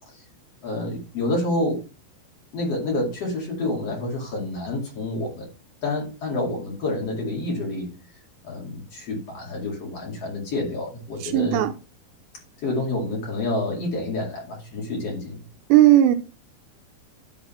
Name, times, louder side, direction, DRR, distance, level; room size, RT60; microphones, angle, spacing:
voice 1, 0.6-1.8 2.5-5.5 5.8-7.9 8.4-11.6 12.6-15.4, left 2 dB, 40° left, -2 dB, 2.7 m, -28 dB
voice 2, 11.2-11.7 15.7-16.2, right 13 dB, 85° right, 8 dB, 2.7 m, -16 dB
11.0 x 4.2 x 4.3 m, 0.32 s
omnidirectional pair, 5.0 m